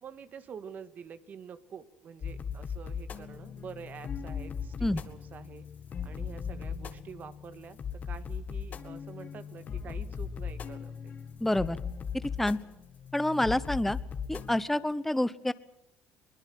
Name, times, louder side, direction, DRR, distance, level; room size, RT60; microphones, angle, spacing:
voice 1, 0.0-5.6 6.0-7.8 8.0-11.1, right 7 dB, 45° right, 12 dB, 1.7 m, -47 dB
sound 1, 2.2-14.6, left 6 dB, 45° left, 1.9 m, -38 dB
voice 2, 11.4-11.8 12.2-12.6 13.1-14.0 14.3-15.5, left 1 dB, 5° left, 16 dB, 0.9 m, -28 dB
22.5 x 20.5 x 7.7 m, 0.85 s
supercardioid pair, 95°, 4 cm